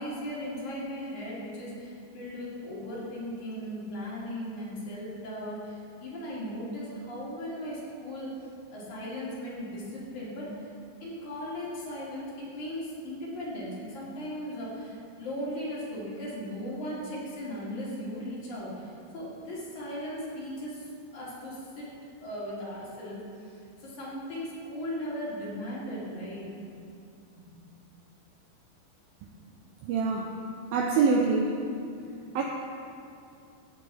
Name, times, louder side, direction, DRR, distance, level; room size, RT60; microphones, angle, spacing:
voice 1, 0.0-8.3 8.7-10.7 11.0-20.9 21.1-21.9 22.2-26.5 27.3-27.4, equal, 45° left, -8 dB, 3.9 m, -37 dB
voice 2, 29.8-30.4 30.7-31.6 32.3-32.4, right 4 dB, 90° right, 1 dB, 2.0 m, -25 dB
15.0 x 9.4 x 4.3 m, 2.5 s
omnidirectional pair, 5.2 m